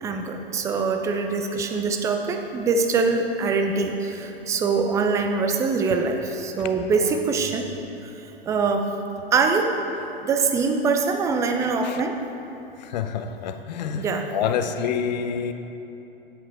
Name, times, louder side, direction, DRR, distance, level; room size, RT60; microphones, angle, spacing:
voice 1, 0.0-7.7 8.5-8.9 9.3-9.7 10.2-12.2 13.9-14.3, right 4 dB, 10° right, 5 dB, 0.4 m, -23 dB
voice 2, 12.8-15.5, left 7 dB, 45° left, 8 dB, 0.7 m, -28 dB
9.2 x 7.8 x 4.4 m, 2.9 s
figure-of-eight pair, 110°, 30 cm